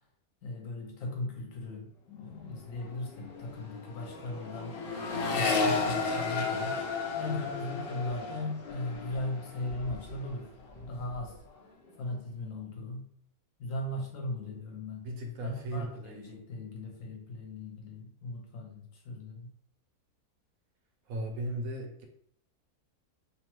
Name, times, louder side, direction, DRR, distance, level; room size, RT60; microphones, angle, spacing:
voice 1, 0.4-4.9 5.3-6.8 7.2-10.5 10.9-11.4 12.0-13.1 13.6-15.1 15.4-19.5, left 2 dB, 65° left, 1 dB, 0.9 m, -38 dB
Accelerating revving vroom, 2.3-2.5 2.8-10.3 10.6-11.3, left 4 dB, 85° left, 0.5 m, -34 dB
voice 2, 15.0-16.4 21.1-22.1, equal, 75° right, 3 dB, 1.0 m, -37 dB
2.9 x 2.1 x 2.9 m, 0.64 s
omnidirectional pair, 1.6 m